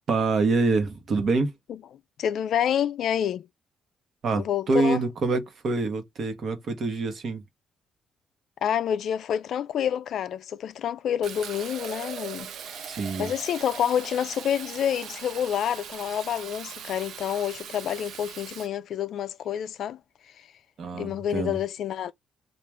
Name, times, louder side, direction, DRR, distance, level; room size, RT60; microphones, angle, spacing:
voice 1, 0.1-1.5 4.2-7.4 12.9-13.3 20.8-21.6, right 3 dB, 55° right, 1.0 m, -26 dB
voice 2, 2.2-3.5 4.4-5.0 8.6-20.0 20.9-22.1, left 9 dB, 70° left, 0.3 m, -28 dB
Fill (with liquid), 11.2-18.7, right 8 dB, 75° right, 0.4 m, -40 dB
3.0 x 2.4 x 3.4 m
cardioid pair, 90°, 0 cm